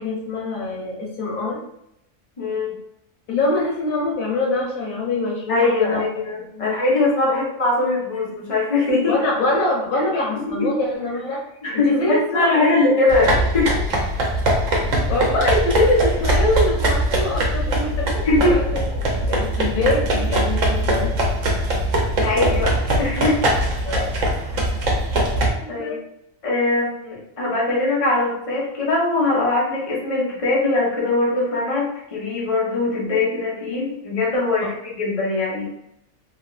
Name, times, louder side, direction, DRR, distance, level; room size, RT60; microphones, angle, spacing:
voice 1, 0.0-1.6 3.3-6.1 6.5-6.7 7.3-7.4 9.1-11.4 11.8-12.8 15.1-18.8 19.1-21.1 23.8-24.1 24.5-24.8 25.3-26.0 34.6-34.7, left 2 dB, 85° left, -2 dB, 1.3 m, -24 dB
voice 2, 2.4-2.7 5.5-9.1 10.3-10.7 11.6-13.7 18.2-18.5 22.2-23.4 25.7-26.0 26.4-35.7, left 2 dB, 30° left, -5 dB, 0.8 m, -21 dB
sound 1, 13.1-25.5, right 1 dB, 70° right, 1.1 m, -21 dB
3.1 x 3.0 x 2.4 m, 0.79 s
omnidirectional pair, 1.4 m